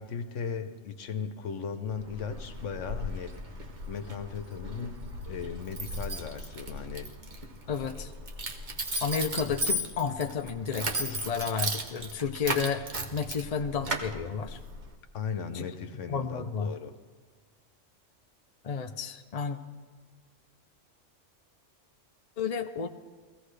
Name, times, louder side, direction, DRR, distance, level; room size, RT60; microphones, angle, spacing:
voice 1, 0.0-3.4 3.9-7.1 15.1-16.9, left 6 dB, 80° left, 8 dB, 1.2 m, -37 dB
Keys jangling, 1.9-14.9, right 1 dB, 40° right, 1.1 m, -36 dB
voice 2, 7.7-8.1 9.0-12.9 13.1-14.6 15.5-15.7 16.1-16.7 18.6-19.6 22.4-22.9, left 6 dB, 45° left, 5 dB, 0.5 m, -31 dB
22.0 x 16.0 x 3.3 m, 1.5 s
omnidirectional pair, 1.3 m